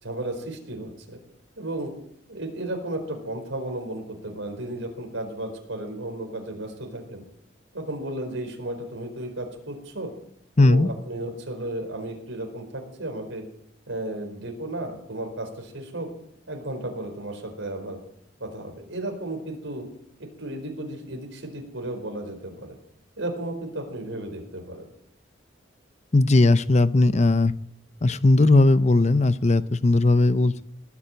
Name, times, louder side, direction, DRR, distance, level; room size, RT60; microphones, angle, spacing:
voice 1, 0.0-1.2 1.6-1.9 2.3-7.2 7.7-10.1 10.6-13.4 13.9-16.1 16.5-18.0 18.4-19.9 20.2-22.8 23.2-24.9, right 1 dB, 80° right, 3 dB, 4.6 m, -34 dB
voice 2, 10.6-10.9 26.1-27.5 28.0-30.6, left 2 dB, 35° left, 14 dB, 0.6 m, -18 dB
19.0 x 7.3 x 9.0 m, 0.69 s
head